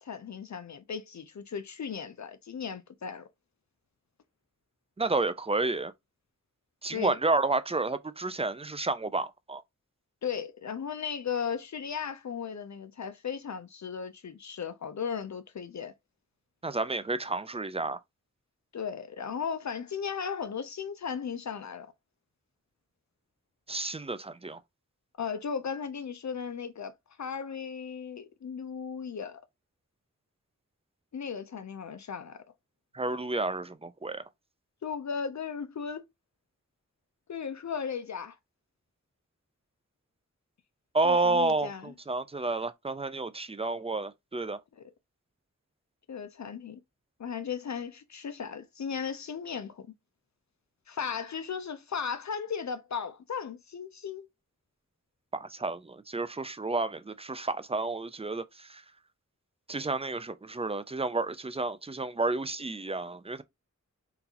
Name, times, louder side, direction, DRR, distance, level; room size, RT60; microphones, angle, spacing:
voice 1, 0.0-3.3 6.9-7.2 10.2-15.9 18.7-21.9 25.2-26.9 27.2-29.4 31.1-32.4 34.8-36.1 37.3-38.4 41.0-41.9 44.8-44.9 46.1-46.8 47.2-49.9 50.9-54.3, left 6 dB, 65° left, 0.5 m, -36 dB
voice 2, 5.0-5.9 6.8-9.6 16.6-18.0 23.7-24.6 32.9-34.2 40.9-44.6 55.3-58.8 59.7-63.4, right 3 dB, 20° right, 0.4 m, -30 dB
3.8 x 2.4 x 2.8 m
wide cardioid pair, 50°, 31 cm